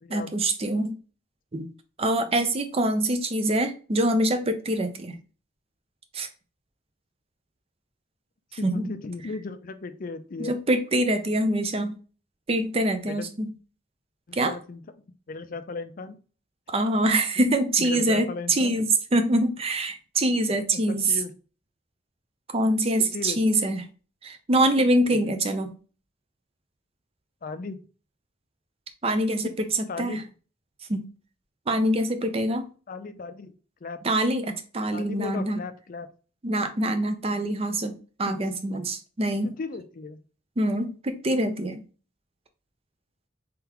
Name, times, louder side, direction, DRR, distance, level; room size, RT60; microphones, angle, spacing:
voice 1, 0.1-0.9 1.5-1.7 2.0-5.2 6.1-6.3 8.6-8.9 10.4-11.9 12.5-13.5 14.3-14.5 16.7-21.1 22.5-23.8 24.2-25.7 29.0-30.2 30.9-31.1 31.7-32.6 34.0-35.6 36.4-39.5 40.6-41.8, right 1 dB, 30° right, 8 dB, 0.5 m, -25 dB
voice 2, 8.6-10.5 13.1-13.3 14.3-14.8 15.3-16.2 17.8-18.8 20.7-21.3 23.1-23.4 25.1-25.3 27.4-27.8 29.4-29.5 29.9-30.2 32.9-33.5 33.8-34.0 34.9-36.1 38.3-38.4 39.4-40.2, left 3 dB, 45° left, 10 dB, 0.4 m, -36 dB
3.8 x 3.4 x 2.9 m, 0.37 s
head